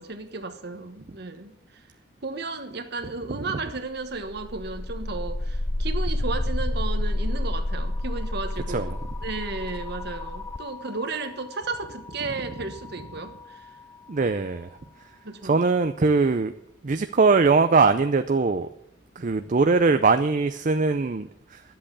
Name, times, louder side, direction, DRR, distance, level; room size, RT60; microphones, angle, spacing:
voice 1, 0.0-1.8 2.2-8.9 9.2-13.8 15.2-15.6 19.2-19.3, right 3 dB, 60° right, 1.2 m, -34 dB
sound 1, 4.0-14.0, left 1 dB, 15° left, 0.4 m, -30 dB
voice 2, 14.1-14.7 15.4-16.5 16.8-18.7 19.2-21.6, right 4 dB, 45° right, 0.5 m, -21 dB
11.0 x 7.8 x 8.4 m
head